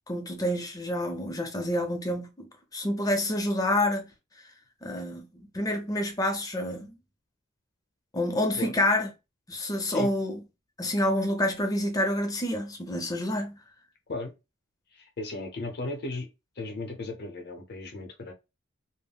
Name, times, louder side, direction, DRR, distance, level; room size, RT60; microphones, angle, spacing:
voice 1, 0.1-4.1 4.8-7.0 8.1-9.1 9.5-10.4 10.8-13.6, left 1 dB, 20° left, 0.5 m, -28 dB
voice 2, 14.9-16.3 16.6-18.3, left 2 dB, 55° left, 0.7 m, -36 dB
3.5 x 2.1 x 2.3 m
head